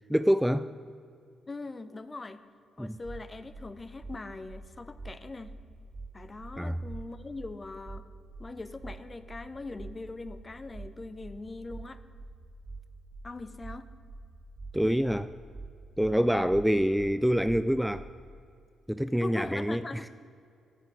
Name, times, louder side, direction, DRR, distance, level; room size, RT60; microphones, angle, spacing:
voice 1, 0.1-0.7 2.8-3.0 6.6-6.8 14.7-15.3 16.0-18.1 18.9-19.8, equal, ahead, 13 dB, 0.3 m, -26 dB
voice 2, 1.5-2.4 2.8-5.5 6.1-8.0 8.4-12.0 13.2-13.9 19.0-20.1, left 3 dB, 30° left, 13 dB, 0.7 m, -41 dB
sound 1, 3.0-3.2 3.5-3.7 4.0-4.2 4.5-4.6 5.0-5.1 5.4-5.6 5.9-6.1 6.4-6.6 6.9-7.0 7.4-7.5 7.8-8.0 8.3-8.5 8.8-9.0 9.3-9.4 9.8-9.9 10.2-10.4 10.7-10.9 11.2-11.4 11.7-11.8 12.2-12.3 12.6-12.8 13.1-13.3 13.6-13.8 14.1-14.2 14.6-14.7 15.0-15.2 15.5-15.7 16.0-16.2 16.5-16.6 17.0-17.1 17.4-17.6 17.9-18.1, right 3 dB, 45° right, 1.4 m, -43 dB
10.5 x 6.4 x 8.7 m, 2.4 s
hypercardioid pair, 40°, 0 cm